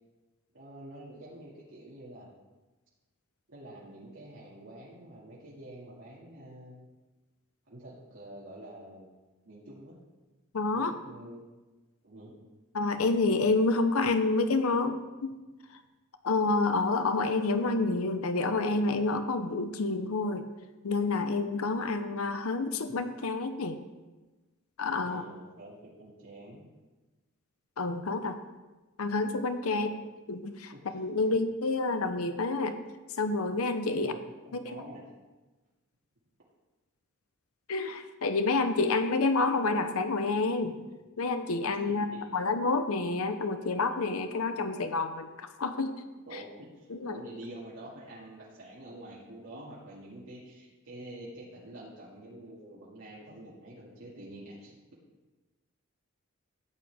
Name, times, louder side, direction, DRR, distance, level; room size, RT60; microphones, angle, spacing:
voice 1, 0.5-2.3 3.5-6.8 7.7-9.1 9.4-10.0 10.7-11.4 12.0-12.3 25.0-26.6 29.7-29.9 30.7-30.9 34.0-34.2 34.4-35.0 41.9-42.3 46.3-54.8, right 1 dB, 60° right, -7 dB, 2.3 m, -47 dB
voice 2, 10.5-10.9 12.7-15.4 15.7-15.8 16.2-20.5 20.8-23.8 24.8-25.2 27.8-28.4 29.0-29.9 30.3-32.8 33.1-34.2 34.5-34.8 37.7-40.7 41.2-42.1 42.3-45.9 46.3-46.4 46.9-47.2, left 3 dB, 80° left, 9 dB, 0.7 m, -28 dB
13.5 x 9.0 x 3.5 m, 1.2 s
head